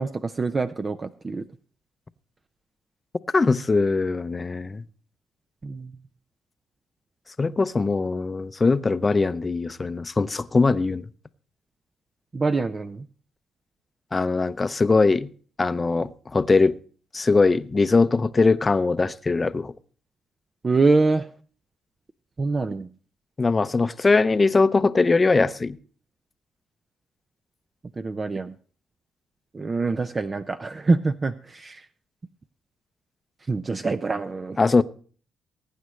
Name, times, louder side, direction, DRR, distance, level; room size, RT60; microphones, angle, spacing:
voice 1, 0.0-1.4 5.6-5.9 12.3-13.1 20.6-21.3 22.4-22.9 28.0-28.5 29.5-31.9 33.5-34.6, right 3 dB, 30° right, 0.5 m, -25 dB
voice 2, 3.3-4.8 7.4-11.1 14.1-15.3 15.6-16.7 17.1-19.7 23.4-25.8 34.6-34.8, left 3 dB, 25° left, 0.6 m, -21 dB
21.5 x 9.5 x 3.2 m
cardioid pair, 90°, 0 cm